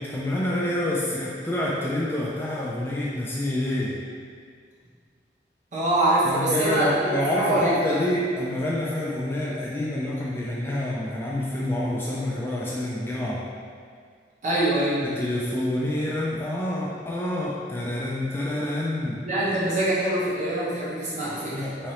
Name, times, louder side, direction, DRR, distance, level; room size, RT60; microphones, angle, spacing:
voice 1, 0.0-4.0 6.2-13.5 15.0-19.3 21.5-21.9, left 1 dB, 15° left, -5 dB, 0.3 m, -27 dB
voice 2, 5.7-8.0 14.4-15.1 19.3-21.7, right 1 dB, 45° right, -8 dB, 1.0 m, -24 dB
3.7 x 3.1 x 2.8 m, 2.1 s
head